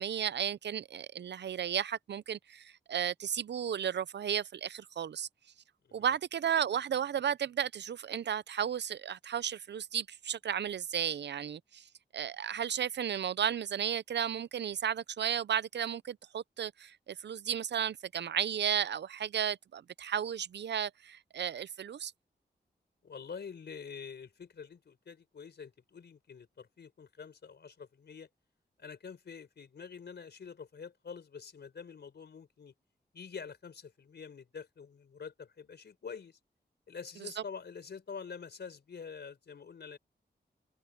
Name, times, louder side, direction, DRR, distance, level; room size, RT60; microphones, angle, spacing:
voice 1, 0.0-5.3 5.9-11.9 12.1-22.1, right 9 dB, 90° right, 0.5 m, -34 dB
voice 2, 23.0-28.3 28.8-32.7 33.1-36.4 36.9-40.0, left 6 dB, 75° left, 4.2 m, -46 dB
wide cardioid pair, 125°, 18 cm